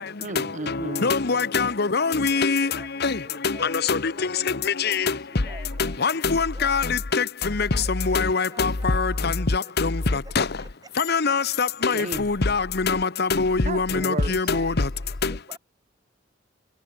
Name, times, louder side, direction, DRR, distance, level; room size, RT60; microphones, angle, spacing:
voice 1, 0.2-1.1 11.9-12.3 13.6-14.5, right 2 dB, 40° right, 1.1 m, -33 dB
voice 2, 1.0-2.7 3.9-4.0 6.0-6.8 7.1-7.2 8.1-8.7 10.4-10.5 11.1-11.4 11.8-11.9 12.5-12.6 12.9-13.0 13.4-13.6 14.0-14.1, left 4 dB, 55° left, 1.1 m, -22 dB
voice 3, 2.3-4.5 4.8-6.8 7.4-10.7 11.3-11.4 14.0-15.6, right 2 dB, 20° right, 4.1 m, -49 dB
head